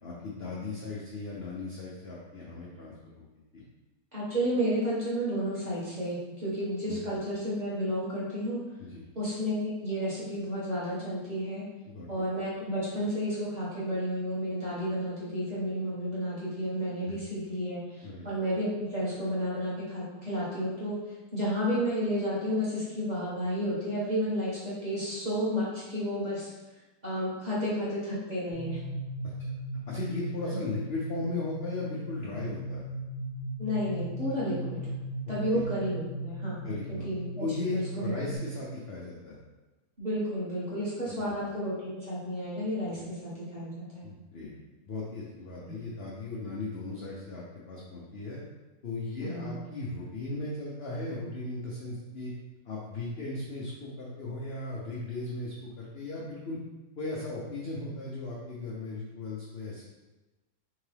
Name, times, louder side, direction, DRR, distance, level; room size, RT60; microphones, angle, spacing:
voice 1, 0.0-3.6 6.9-7.0 8.8-9.1 11.8-12.2 17.0-17.2 18.0-18.3 29.9-32.8 35.5-35.6 36.6-37.1 37.4-39.4 41.0-41.4 42.9-43.0 44.0-44.5 44.9-48.4 48.8-52.3 52.6-56.6 57.0-59.8, left 2 dB, 60° left, -5 dB, 0.6 m, -37 dB
voice 2, 4.1-8.6 9.1-11.6 12.1-20.9 21.3-26.5 27.0-28.8 33.6-34.8 35.3-36.6 36.9-38.1 40.0-44.0 45.6-45.7 49.2-49.5, equal, 25° right, -10 dB, 1.4 m, -31 dB
sound 1, 28.5-38.4, right 1 dB, 40° right, 1.3 m, -37 dB
3.7 x 3.7 x 3.3 m, 1.1 s
omnidirectional pair, 1.8 m